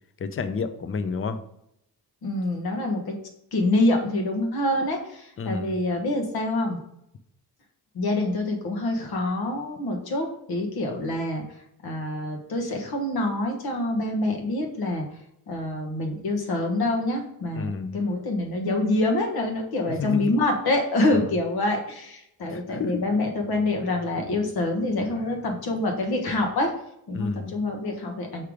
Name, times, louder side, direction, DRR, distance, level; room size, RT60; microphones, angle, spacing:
voice 1, 0.2-1.4 5.4-5.8 17.5-18.0 20.0-20.3 21.1-21.3 22.5-23.0 27.1-27.7, left 5 dB, 35° left, 10 dB, 0.6 m, -30 dB
voice 2, 2.2-3.1 3.5-6.8 7.9-11.4 11.8-15.0 15.5-26.7 27.1-28.4, left 2 dB, 75° left, 2 dB, 1.4 m, -26 dB
5.8 x 3.3 x 4.9 m, 0.78 s
cardioid pair, 90°, 38 cm